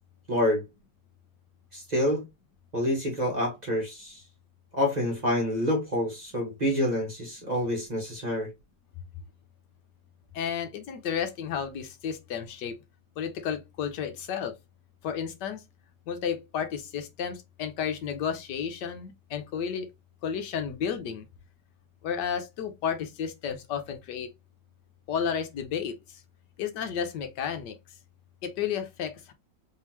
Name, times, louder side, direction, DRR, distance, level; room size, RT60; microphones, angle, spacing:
voice 1, 0.3-0.6 1.7-2.2 2.7-4.2 4.7-8.5, left 1 dB, 30° right, 1.0 m, -27 dB
voice 2, 10.3-12.7 13.2-14.5 15.0-15.6 16.1-19.9 20.2-21.3 22.0-24.3 25.1-25.9 26.6-27.8 28.4-29.3, left 7 dB, 75° left, 1.3 m, -32 dB
3.7 x 3.2 x 2.9 m
omnidirectional pair, 1.9 m